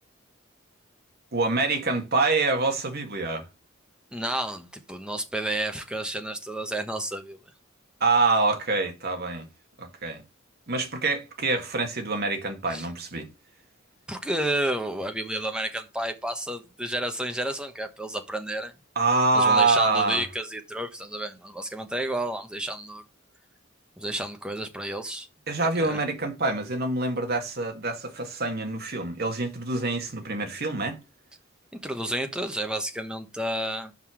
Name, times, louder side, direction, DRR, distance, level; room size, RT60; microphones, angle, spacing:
voice 1, 1.3-3.4 8.0-9.5 9.8-10.2 10.7-13.3 18.9-20.2 25.5-31.0, right 3 dB, 55° right, 1.8 m, -25 dB
voice 2, 4.1-7.4 12.7-12.9 14.1-18.7 19.3-23.0 24.0-25.3 25.8-26.0 31.8-33.9, right 1 dB, 5° right, 1.1 m, -31 dB
5.8 x 5.4 x 6.2 m
head